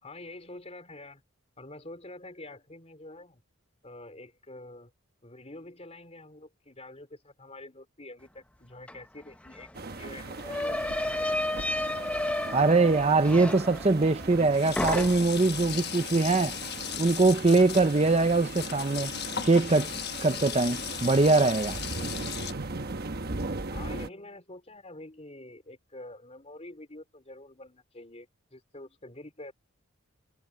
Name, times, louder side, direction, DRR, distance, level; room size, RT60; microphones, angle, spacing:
voice 1, 0.0-1.2 1.6-3.4 3.8-4.9 5.2-11.4 23.7-29.5, left 2 dB, 30° left, 3.9 m, -47 dB
sound 1, 8.9-9.0 9.2-14.5 14.8-15.5, left 1 dB, 5° left, 0.9 m, -32 dB
sound 2, 9.7-24.1, right 3 dB, 45° right, 1.2 m, -38 dB
Sink (filling or washing), 10.0-13.1 13.9-14.0 14.2-22.5, left 9 dB, 50° left, 1.1 m, -38 dB
voice 2, 12.5-16.5 17.0-19.1 19.4-19.9 20.2-21.8, right 3 dB, 30° right, 0.6 m, -22 dB
head